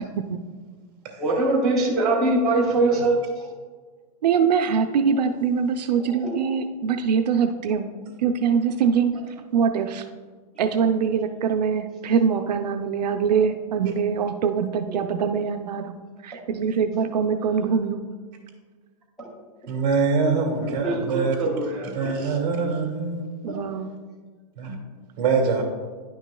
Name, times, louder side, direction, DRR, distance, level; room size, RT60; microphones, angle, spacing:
voice 1, 1.2-3.4 6.0-6.5 14.9-15.0 19.2-19.3 20.8-22.3 23.5-23.6, right 2 dB, ahead, -10 dB, 0.6 m, -23 dB
voice 2, 4.2-7.9 8.2-9.1 9.5-10.0 10.6-18.0 23.4-23.9, right 6 dB, 80° right, 6 dB, 0.5 m, -23 dB
voice 3, 19.7-21.5 21.9-23.3 24.6-24.8 25.2-25.6, right 4 dB, 35° right, 1 dB, 1.8 m, -24 dB
10.5 x 6.1 x 2.2 m, 1.5 s
supercardioid pair, 180°, 21 cm